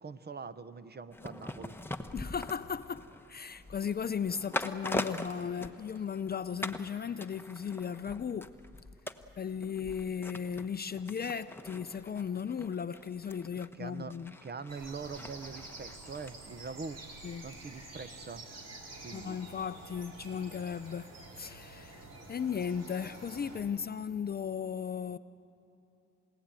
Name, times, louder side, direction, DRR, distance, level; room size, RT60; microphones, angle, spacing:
voice 1, 0.0-1.8 13.8-14.1 14.4-17.0 17.4-18.4 19.0-19.4, right 4 dB, 35° right, 1.0 m, -43 dB
sound 1, 1.1-6.3 6.6-6.9 7.2-16.3 16.6-16.7, left 1 dB, 5° left, 1.1 m, -42 dB
voice 2, 2.1-8.5 9.4-14.3 17.2-17.5 19.1-21.1 21.4-25.2, left 7 dB, 30° left, 0.5 m, -36 dB
sound 2, 14.7-23.6, right 2 dB, 55° right, 5.1 m, -48 dB
28.5 x 17.5 x 9.0 m
cardioid pair, 90°, 30 cm